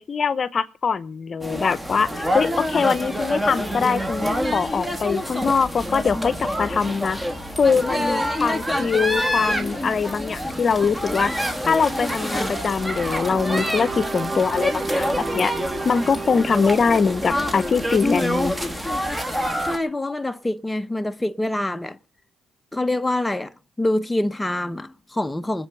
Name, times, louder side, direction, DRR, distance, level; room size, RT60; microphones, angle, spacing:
voice 1, 0.0-7.2 7.6-11.3 11.6-15.5 15.8-18.5, left 5 dB, 45° left, 0.9 m, -22 dB
sound 1, 1.4-19.8, equal, 10° right, 2.7 m, -26 dB
sound 2, 12.6-18.8, right 4 dB, 45° right, 1.2 m, -34 dB
voice 2, 19.6-22.0 22.7-25.7, left 1 dB, 10° left, 0.8 m, -25 dB
20.0 x 7.8 x 6.7 m
supercardioid pair, 75°, 0 cm